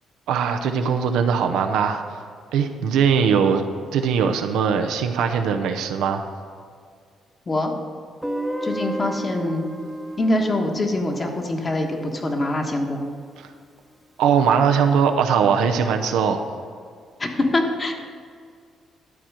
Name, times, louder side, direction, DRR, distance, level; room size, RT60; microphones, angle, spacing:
voice 1, 0.3-2.0 2.5-3.6 3.9-6.3 14.2-16.5, right 6 dB, 90° right, 6 dB, 0.7 m, -20 dB
Guitar, 8.2-13.1, equal, ahead, 0.9 m, -33 dB
voice 2, 8.6-9.7 10.2-13.1 17.2-17.9, left 1 dB, 30° left, 2 dB, 1.3 m, -24 dB
11.5 x 4.4 x 6.2 m, 2.1 s
cardioid pair, 90°, 0 cm